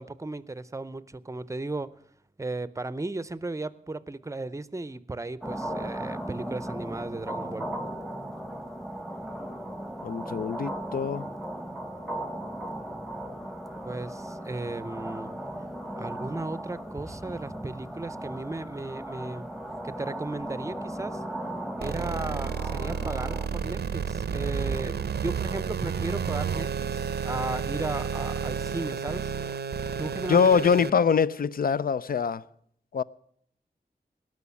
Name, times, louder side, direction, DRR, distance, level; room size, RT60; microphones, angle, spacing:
voice 1, 0.0-1.9 2.4-7.7 13.8-15.3 16.0-19.5 19.8-21.2 21.8-29.3 30.0-30.7, right 2 dB, 20° right, 0.6 m, -35 dB
sound 1, 5.4-23.5, right 1 dB, ahead, 1.0 m, -37 dB
voice 2, 10.0-11.3 30.3-32.4 32.9-33.0, left 6 dB, 60° left, 0.5 m, -23 dB
sound 2, 21.8-30.9, right 6 dB, 85° right, 0.6 m, -31 dB
18.5 x 6.4 x 8.3 m
wide cardioid pair, 105°, 17 cm